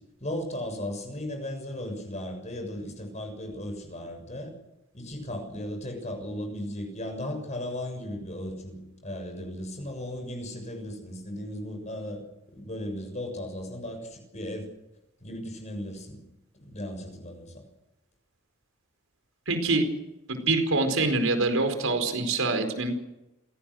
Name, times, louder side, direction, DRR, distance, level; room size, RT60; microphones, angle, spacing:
voice 1, 0.2-4.5 4.9-12.2 12.5-14.7 15.2-16.2 16.6-17.6, left 1 dB, 35° left, 4 dB, 6.8 m, -36 dB
voice 2, 19.5-19.8 20.3-22.9, right 3 dB, 85° right, 7 dB, 4.7 m, -25 dB
27.0 x 18.5 x 6.5 m, 0.93 s
head